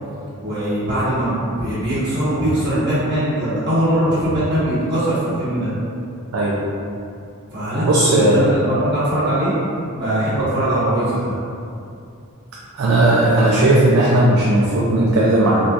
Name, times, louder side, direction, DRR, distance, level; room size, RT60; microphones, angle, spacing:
voice 1, 0.4-5.7 7.5-9.5 10.0-11.3, right 1 dB, 55° right, -12 dB, 1.5 m, -21 dB
voice 2, 7.8-8.5 12.8-15.7, right 1 dB, 70° right, -5 dB, 0.4 m, -15 dB
4.1 x 2.7 x 2.4 m, 2.5 s
head